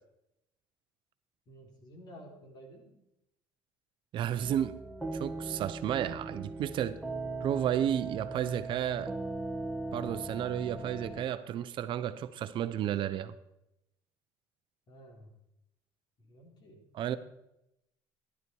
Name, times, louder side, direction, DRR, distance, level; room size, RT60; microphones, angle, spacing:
voice 1, 1.5-2.9 14.9-15.4 16.2-17.2, equal, 45° left, 3.9 m, -53 dB
voice 2, 4.1-4.8 5.1-7.0 7.4-9.1 9.9-13.3 16.9-17.2, right 10 dB, 55° right, 0.7 m, -32 dB
sound 1, 4.4-11.2, right 2 dB, ahead, 1.8 m, -39 dB
15.0 x 11.5 x 4.7 m
cardioid pair, 125°, 10 cm